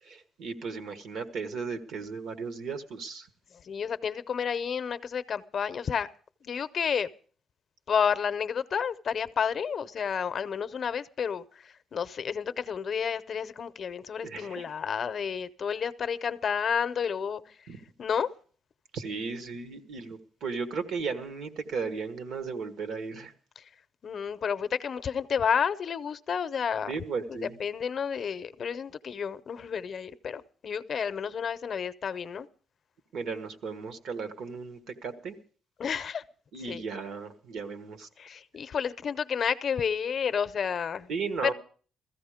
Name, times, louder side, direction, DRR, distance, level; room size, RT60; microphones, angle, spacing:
voice 1, 0.0-3.3 14.2-14.6 17.7-17.8 18.9-23.3 26.9-27.6 33.1-35.4 36.5-38.1 41.1-41.5, right 5 dB, 80° right, 9 dB, 1.5 m, -35 dB
voice 2, 3.6-6.1 6.4-7.1 7.9-17.4 18.0-18.3 23.6-23.7 24.0-26.9 27.3-32.5 35.8-36.2 36.7-36.8 38.2-41.1 41.4-41.5, left 7 dB, 50° left, 13 dB, 0.6 m, -30 dB
16.0 x 14.5 x 5.0 m, 0.43 s
cardioid pair, 130°, 0 cm